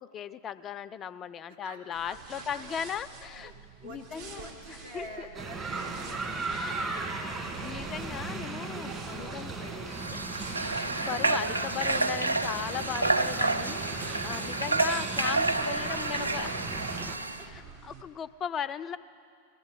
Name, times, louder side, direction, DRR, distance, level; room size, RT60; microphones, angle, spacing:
voice 1, 0.0-3.5 3.8-5.3 6.5-6.8 7.6-9.5 10.6-13.8 14.2-16.5 17.4-19.0, left 8 dB, 25° left, 15 dB, 0.4 m, -37 dB
voice 2, 1.5-2.8 3.4-7.5 8.9-10.3 11.1-11.2 14.3-14.4 15.5-17.1 17.4-17.5, right 1 dB, 60° right, 0 dB, 2.4 m, -46 dB
sound 1, 1.9-18.0, right 5 dB, 45° right, 1.4 m, -50 dB
sound 2, 5.3-17.2, right 3 dB, 20° right, 1.8 m, -37 dB
Water / Water tap faucet, 9.9-17.4, right 2 dB, 80° right, 0.4 m, -29 dB
19.5 x 14.5 x 3.8 m, 2.3 s
figure-of-eight pair, 90°, 0 cm